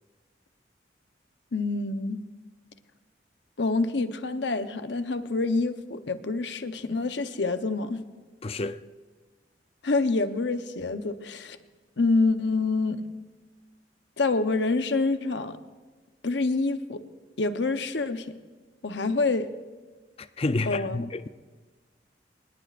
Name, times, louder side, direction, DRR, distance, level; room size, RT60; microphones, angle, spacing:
voice 1, 1.5-2.2 3.6-8.0 9.8-11.6 12.0-13.0 14.2-15.6 16.2-17.0 17.4-18.3 18.8-19.5 20.7-21.0, left 3 dB, 85° left, 0.9 m, -27 dB
voice 2, 8.4-8.8 20.4-21.3, left 2 dB, 35° left, 0.5 m, -29 dB
24.0 x 20.0 x 2.5 m
head